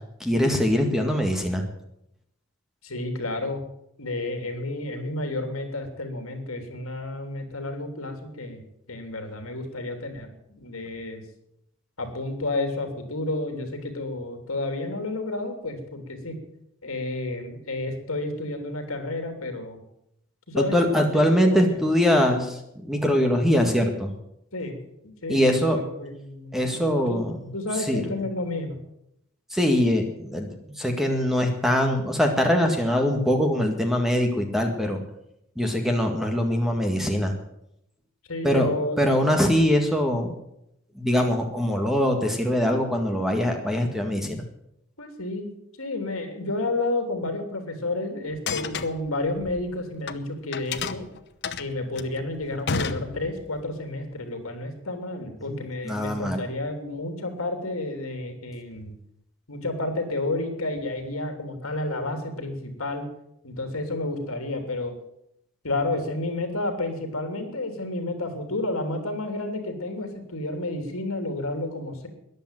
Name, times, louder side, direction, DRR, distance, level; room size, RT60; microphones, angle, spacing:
voice 1, 0.2-1.7 20.5-22.6 22.8-24.1 25.3-25.8 26.5-27.5 27.9-28.2 29.5-30.5 30.8-35.0 35.6-37.3 38.4-38.7 39.0-40.3 41.0-44.4 55.5-55.6 55.8-56.4, equal, ahead, 3 dB, 1.9 m, -22 dB
voice 2, 2.8-3.6 4.0-8.6 8.9-10.3 10.6-11.2 12.0-16.4 16.8-19.8 20.5-21.8 24.5-24.8 25.2-27.2 27.5-28.8 38.3-39.0 45.0-45.5 45.8-51.1 51.6-58.9 59.5-63.1 63.4-64.9 65.6-72.1, left 2 dB, 75° left, 6 dB, 3.1 m, -31 dB
sound 1, 48.3-50.2 50.5-53.6, left 5 dB, 50° left, 0.9 m, -32 dB
14.0 x 10.5 x 9.1 m, 0.81 s
head